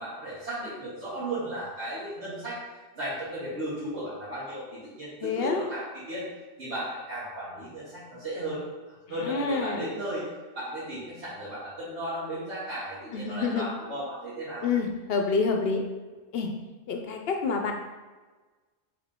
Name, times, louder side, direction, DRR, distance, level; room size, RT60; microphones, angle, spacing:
voice 1, 0.0-2.6 2.9-6.2 6.6-8.6 9.1-10.2 10.5-14.7, right 1 dB, 75° right, -11 dB, 1.5 m, -35 dB
voice 2, 5.2-5.6 9.2-9.8 13.1-13.7 14.6-15.8 16.3-16.5 16.9-17.7, left 4 dB, 65° left, 3 dB, 0.7 m, -27 dB
3.8 x 3.5 x 3.5 m, 1.3 s
omnidirectional pair, 1.2 m